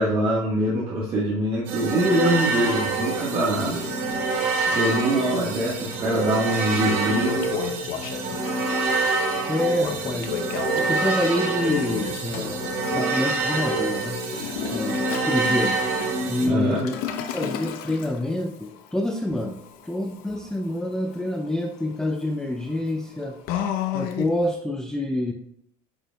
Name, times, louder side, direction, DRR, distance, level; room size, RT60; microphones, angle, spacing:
voice 1, 0.0-3.8 4.7-7.5 14.6-14.8 16.4-16.8, right 1 dB, 35° right, -5 dB, 1.4 m, -23 dB
sound 1, 1.7-16.5, right 3 dB, 65° right, 2.1 m, -26 dB
Toilet flush, 6.0-6.2 6.6-8.5 9.8-13.3 14.2-24.5, left 8 dB, 65° left, 0.8 m, -34 dB
voice 2, 9.5-10.4 10.8-12.6 12.9-14.2 14.7-15.8 16.3-17.0 17.3-19.6 19.8-23.4 23.9-25.3, left 1 dB, 5° left, 3 dB, 0.4 m, -27 dB
8.8 x 4.9 x 2.2 m, 0.72 s
supercardioid pair, 120°, 16 cm